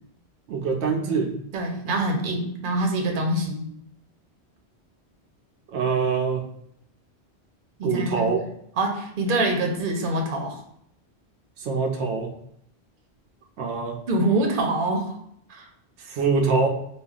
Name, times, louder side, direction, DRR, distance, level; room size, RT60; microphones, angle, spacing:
voice 1, 0.5-1.3 5.7-6.4 7.8-8.4 11.6-12.3 13.6-14.0 16.0-16.7, right 5 dB, 90° right, 2 dB, 0.9 m, -24 dB
voice 2, 1.5-3.7 7.8-8.3 8.8-10.6 14.1-15.1 15.5-15.7, right 2 dB, 55° right, 2 dB, 0.8 m, -25 dB
4.8 x 2.4 x 2.4 m, 0.71 s
omnidirectional pair, 1.1 m